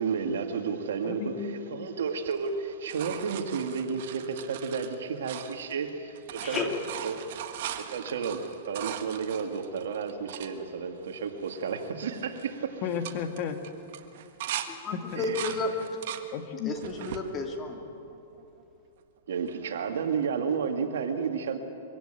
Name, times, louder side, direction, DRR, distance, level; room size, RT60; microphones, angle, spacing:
voice 1, 0.0-6.6 7.0-7.3 7.8-12.8 15.2-15.6 19.3-21.6, right 6 dB, 80° right, 5 dB, 2.2 m, -32 dB
voice 2, 1.0-1.9 12.8-13.6 14.9-15.2 16.3-16.7, left 7 dB, 40° left, 7 dB, 1.8 m, -34 dB
sound 1, 2.2-5.9 6.1-10.5 11.1-11.2 11.4-11.8 12.1-12.5 12.9-14.7 15.1-16.3 16.7-17.3 17.9-18.6 20.2-20.3, right 11 dB, 60° right, 1.5 m, -39 dB
voice 3, 6.4-6.7 14.7-15.7 16.1-16.2 16.7-17.8, left 3 dB, 25° left, 3 dB, 2.6 m, -32 dB
23.0 x 16.0 x 9.1 m, 2.8 s
hypercardioid pair, 140°, 0 cm